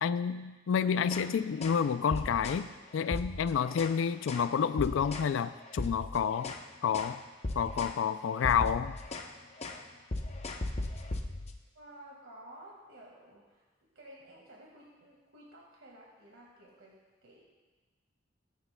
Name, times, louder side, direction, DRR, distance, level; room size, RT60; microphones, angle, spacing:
voice 1, 0.0-6.6 6.8-7.2 7.6-9.0, left 7 dB, 75° left, 13 dB, 0.3 m, -29 dB
sound 1, 1.0-1.3 1.6-1.8 2.1-2.7 3.0-4.0 4.3-4.5 4.8-5.3 5.7-6.7 6.9-7.2 7.4-8.0 8.3-9.3 9.6-9.8 10.1-11.6, left 2 dB, 35° left, 0.7 m, -37 dB
voice 2, 11.7-13.7 14.0-17.0 17.2-17.4, right 1 dB, 90° right, -3 dB, 1.8 m, -53 dB
19.0 x 8.4 x 2.2 m, 1.3 s
head